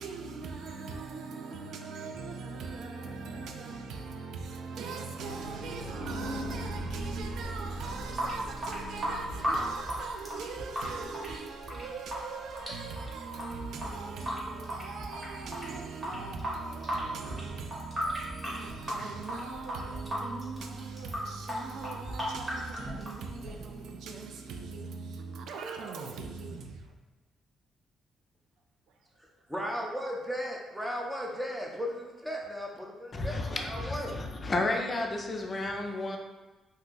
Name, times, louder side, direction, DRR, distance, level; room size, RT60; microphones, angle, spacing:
voice 1, 0.0-26.9, right 4 dB, 75° right, 0.3 m, -40 dB
sound 1, 4.5-10.1 10.4-10.5 10.6-10.7 11.0-11.1, right 1 dB, 60° right, 1.0 m, -40 dB
Water tap faucet / Sink (filling or washing) / Drip, 7.9-23.8, equal, 20° right, 1.2 m, -36 dB
voice 2, 29.5-34.1, equal, 5° right, 0.7 m, -36 dB
voice 3, 33.1-36.2, left 2 dB, 35° left, 0.4 m, -32 dB
2.6 x 2.3 x 3.8 m
cardioid pair, 90°, 0 cm